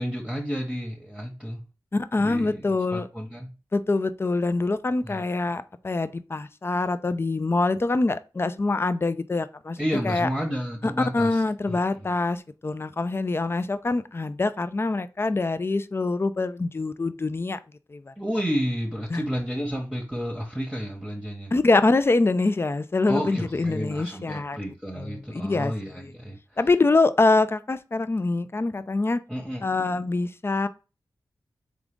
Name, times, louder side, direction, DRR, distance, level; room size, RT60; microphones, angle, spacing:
voice 1, 0.0-1.6 2.2-3.5 5.0-5.2 9.8-11.4 11.7-12.1 18.2-21.5 23.1-26.4 29.3-29.6, equal, 5° right, 1.1 m, -31 dB
voice 2, 1.9-3.1 3.7-9.8 10.0-10.3 10.8-17.6 17.9-18.1 19.1-19.2 21.5-24.6 25.0-26.1 26.6-29.2 29.6-30.7, left 3 dB, 30° left, 0.4 m, -24 dB
3.7 x 3.6 x 3.6 m
cardioid pair, 45°, 8 cm